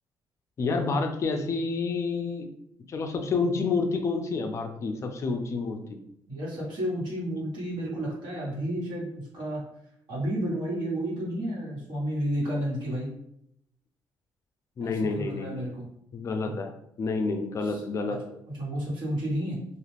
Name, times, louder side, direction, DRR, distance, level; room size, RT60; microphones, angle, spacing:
voice 1, 0.6-2.5 2.9-6.0 14.8-15.6 16.1-16.7 17.0-18.2, left 4 dB, 35° left, 5 dB, 0.4 m, -29 dB
voice 2, 6.3-9.6 10.1-13.1 14.8-15.9 16.4-16.6 17.6-17.8 18.1-18.2 18.5-19.6, right 1 dB, 65° right, -7 dB, 1.4 m, -31 dB
2.4 x 2.4 x 3.3 m, 0.75 s
cardioid pair, 160°, 8 cm